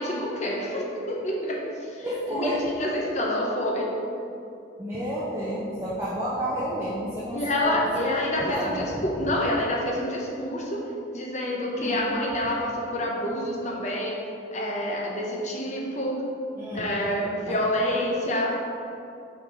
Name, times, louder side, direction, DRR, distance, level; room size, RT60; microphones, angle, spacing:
voice 1, 0.0-2.1 2.3-3.9 7.3-10.8 11.1-14.2 14.5-16.2 16.7-18.5, left 1 dB, 40° left, -2 dB, 0.8 m, -27 dB
voice 2, 2.0-2.6 4.8-7.9 8.4-8.9 11.7-12.0 16.6-17.0 17.5-17.6, equal, 15° right, -9 dB, 0.7 m, -30 dB
5.9 x 4.0 x 5.1 m, 2.7 s
head